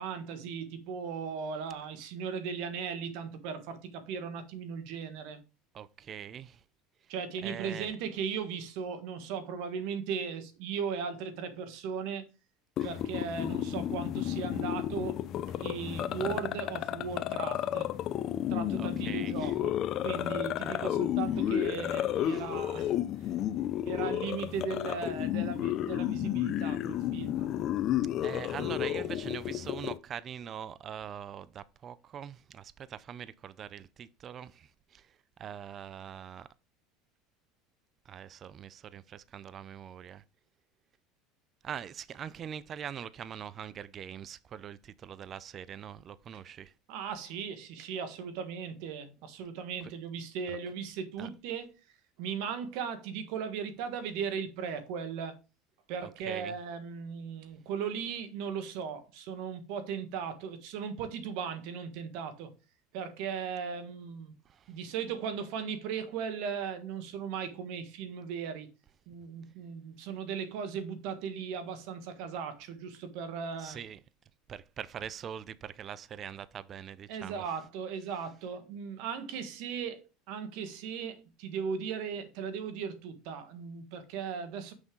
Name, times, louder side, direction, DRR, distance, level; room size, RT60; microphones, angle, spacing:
voice 1, 0.0-5.4 7.1-12.2 12.8-17.9 18.5-22.9 23.8-27.5 46.9-51.7 52.2-55.4 55.9-62.5 62.9-64.3 64.7-68.7 69.1-73.8 77.1-80.0 80.3-84.7, right 6 dB, 70° right, 1.4 m, -37 dB
voice 2, 5.7-6.6 7.4-7.9 12.8-12.9 18.8-19.5 20.8-20.9 22.3-22.5 28.2-36.5 38.1-40.2 41.6-46.7 50.5-50.6 51.2-51.3 56.0-56.6 64.4-64.8 73.6-74.0 74.5-77.4, right 9 dB, 40° right, 0.5 m, -43 dB
sound 1, 12.8-30.0, left 11 dB, 50° left, 0.5 m, -32 dB
6.2 x 5.4 x 3.8 m
supercardioid pair, 110°, 0 cm